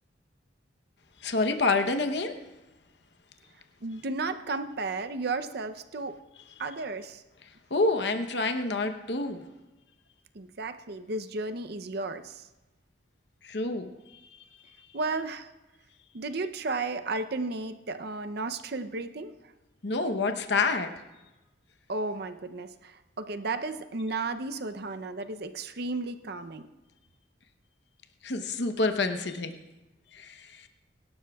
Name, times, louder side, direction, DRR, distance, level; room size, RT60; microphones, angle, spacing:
voice 1, 1.2-2.4 7.7-9.4 13.4-14.2 14.8-14.9 19.8-20.9 28.2-29.5 30.1-30.7, left 3 dB, 60° left, 6 dB, 0.9 m, -28 dB
voice 2, 3.8-6.2 6.6-7.2 10.3-12.5 14.9-15.5 16.1-19.3 21.9-26.7, right 3 dB, 55° right, 9 dB, 0.6 m, -33 dB
23.0 x 12.0 x 2.4 m, 1.1 s
head